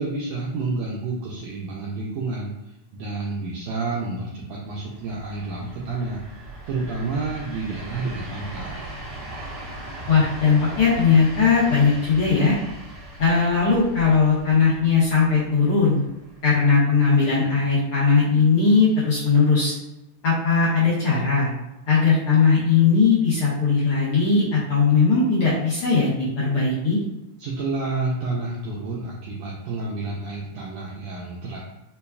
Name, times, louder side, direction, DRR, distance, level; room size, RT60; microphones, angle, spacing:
voice 1, 0.0-6.2 6.7-9.0 27.4-31.6, right 3 dB, 85° right, -3 dB, 1.5 m, -29 dB
sound 1, 4.7-16.7, right 1 dB, 60° right, 1.5 m, -39 dB
voice 2, 10.1-12.6 13.2-16.0 16.4-19.7 20.2-21.5 21.9-27.0, left 5 dB, 75° left, -9 dB, 1.2 m, -19 dB
5.2 x 2.3 x 2.3 m, 0.93 s
omnidirectional pair, 3.5 m